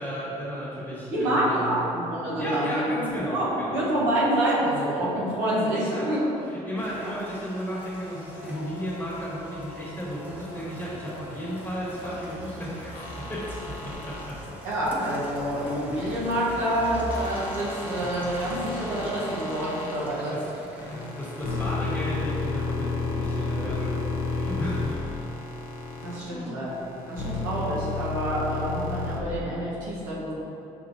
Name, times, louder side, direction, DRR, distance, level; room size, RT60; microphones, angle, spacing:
voice 1, 0.0-1.9 2.4-3.7 5.7-6.1 6.4-13.6 13.8-14.6 19.3-19.4 20.3-20.5 20.9-25.3 26.2-26.6 27.2-27.4, equal, 10° left, -8 dB, 1.3 m, -34 dB
voice 2, 1.1-2.8 3.1-6.2 7.0-7.1 14.6-20.4 26.0-26.7 27.1-30.3, right 1 dB, 90° right, -7 dB, 1.1 m, -27 dB
Rain, 6.8-22.2, equal, 10° right, 0.8 m, -41 dB
sound 1, 12.9-14.3 17.1-20.0 20.8-26.2 26.7-29.2, left 3 dB, 60° left, 0.8 m, -32 dB
6.3 x 2.7 x 2.7 m, 2.9 s
hypercardioid pair, 60°, 17 cm